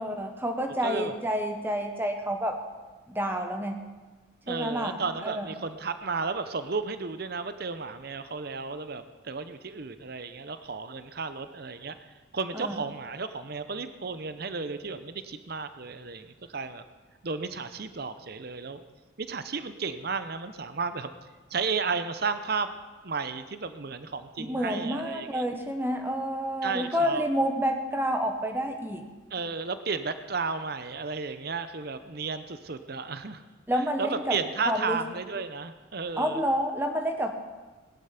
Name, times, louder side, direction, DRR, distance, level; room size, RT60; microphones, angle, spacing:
voice 1, 0.0-2.6 3.1-3.8 4.5-5.5 12.5-12.8 24.4-29.0 33.7-34.4 34.7-35.0 36.2-37.4, equal, 10° right, 5 dB, 1.0 m, -29 dB
voice 2, 0.8-1.1 4.5-16.8 17.2-18.8 19.2-21.1 21.5-22.7 23.0-25.5 26.6-27.2 29.3-33.4 33.7-36.4, right 4 dB, 50° right, 11 dB, 0.7 m, -33 dB
17.5 x 11.0 x 5.8 m, 1.3 s
head